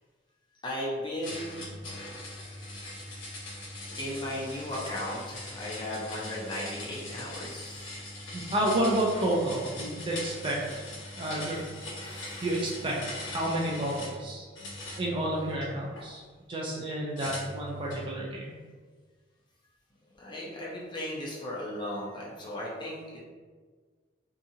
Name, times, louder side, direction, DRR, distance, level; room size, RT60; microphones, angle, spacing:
voice 1, 0.6-1.7 4.0-7.8 12.1-12.2 20.2-23.2, left 1 dB, 25° left, -5 dB, 0.5 m, -36 dB
sound 1, 1.2-14.2 14.6-16.1 17.2-18.1, left 1 dB, 85° left, 0.9 m, -41 dB
voice 2, 8.3-10.8 11.2-11.6 12.4-14.5 15.0-16.2 16.5-18.5, right 1 dB, 25° right, -4 dB, 0.4 m, -30 dB
2.7 x 2.4 x 2.7 m, 1.5 s
head